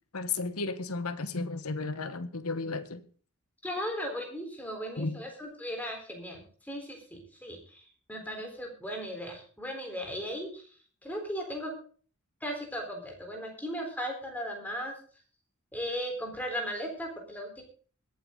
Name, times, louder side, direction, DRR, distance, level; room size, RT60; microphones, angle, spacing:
voice 1, 0.1-3.0 5.0-5.2, left 3 dB, 70° left, 1.2 m, -33 dB
voice 2, 3.6-7.8 8.1-10.6 11.0-11.7 12.4-14.9 15.7-17.6, equal, 5° left, 3.8 m, -37 dB
22.0 x 8.6 x 3.8 m
head